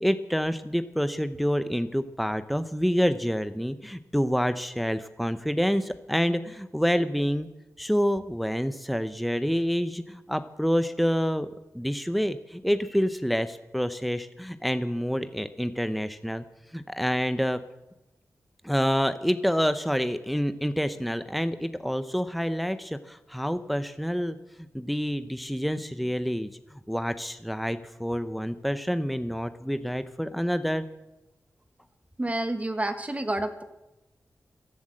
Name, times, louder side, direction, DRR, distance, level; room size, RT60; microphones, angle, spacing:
voice 1, 0.0-7.5 7.8-11.5 11.7-16.4 16.7-17.6 18.6-24.4 24.7-30.8, equal, ahead, 11 dB, 0.8 m, -27 dB
voice 2, 32.2-33.6, right 1 dB, 25° right, 8 dB, 1.2 m, -29 dB
14.0 x 11.5 x 7.6 m, 0.98 s
cardioid pair, 70°, 6 cm